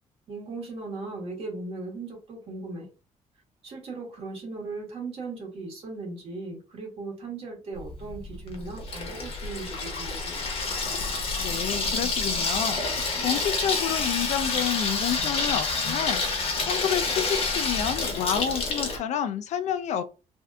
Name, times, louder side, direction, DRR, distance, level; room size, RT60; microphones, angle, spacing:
voice 1, 0.3-2.9 3.6-10.6, right 3 dB, 50° right, -1 dB, 1.5 m, -38 dB
Water tap faucet / Sink (filling or washing), 7.8-19.0, left 3 dB, 50° left, 0.9 m, -28 dB
voice 2, 11.4-12.8 13.2-16.2 16.6-20.0, left 9 dB, 65° left, 10 dB, 0.4 m, -29 dB
3.4 x 2.6 x 2.4 m, 0.32 s
cardioid pair, 165°, 13 cm